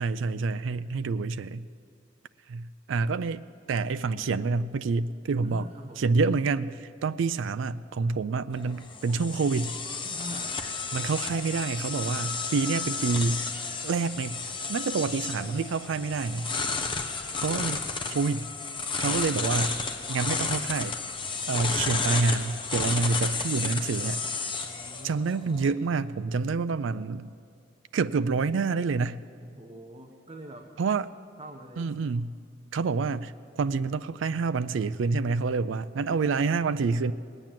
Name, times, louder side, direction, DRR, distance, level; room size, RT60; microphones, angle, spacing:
voice 1, 0.0-1.6 2.5-3.4 3.7-5.6 6.0-9.7 10.9-13.4 13.8-14.4 14.7-16.5 17.4-18.5 19.0-19.7 20.1-21.0 21.5-24.2 25.0-27.4 27.9-29.2 30.8-31.1 31.8-32.3 32.7-37.1, right 4 dB, 80° right, 13 dB, 0.4 m, -27 dB
voice 2, 5.4-6.1 10.0-10.8 24.6-25.2 29.5-30.7 31.4-31.9, right 1 dB, 30° right, 2 dB, 0.9 m, -44 dB
sound 1, 8.5-25.7, left 4 dB, 25° left, 1.0 m, -32 dB
19.5 x 9.0 x 7.5 m, 2.4 s
head